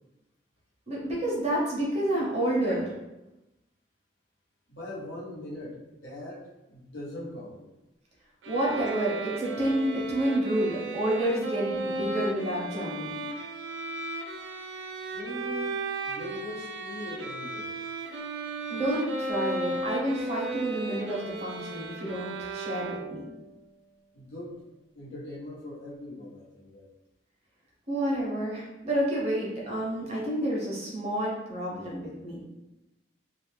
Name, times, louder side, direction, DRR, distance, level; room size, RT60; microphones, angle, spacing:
voice 1, 0.9-2.8 8.5-13.1 18.7-23.2 27.9-32.4, right 1 dB, 35° right, -4 dB, 0.8 m, -29 dB
voice 2, 4.7-7.6 15.1-15.7 16.0-17.7 24.1-24.6 24.9-26.9, left 1 dB, 85° left, -7 dB, 0.9 m, -41 dB
sound 1, 8.4-23.4, right 2 dB, 85° right, 0.3 m, -35 dB
2.4 x 2.1 x 3.1 m, 0.97 s
head